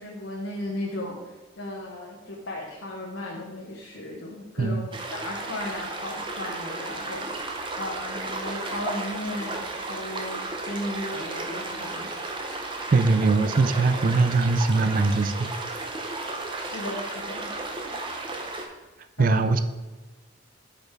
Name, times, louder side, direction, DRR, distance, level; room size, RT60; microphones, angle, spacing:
voice 1, 0.0-12.1 13.7-14.3 16.6-17.5 19.2-19.5, left 1 dB, 80° left, -3 dB, 1.1 m, -36 dB
sound 1, 4.9-18.7, right 2 dB, 25° right, 0.8 m, -34 dB
voice 2, 12.9-15.5 19.2-19.6, right 3 dB, 45° right, 10 dB, 0.4 m, -21 dB
6.5 x 5.2 x 4.6 m, 1.2 s
head